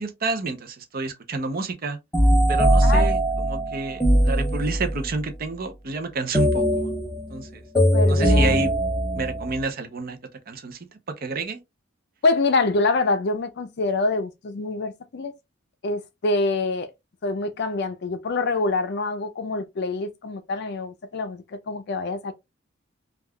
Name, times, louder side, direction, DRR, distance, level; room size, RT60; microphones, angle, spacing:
voice 1, 0.0-2.0 2.5-6.9 7.3-7.6 8.0-8.7 9.1-10.2 10.5-10.8 11.2-11.6, right 3 dB, 50° right, 0.6 m, -29 dB
sound 1, 2.1-5.1 6.3-9.6, equal, 10° left, 0.6 m, -21 dB
voice 2, 7.7-8.6 12.2-15.3 15.8-16.9 17.2-22.3, left 3 dB, 60° left, 0.5 m, -25 dB
3.4 x 2.3 x 2.2 m
head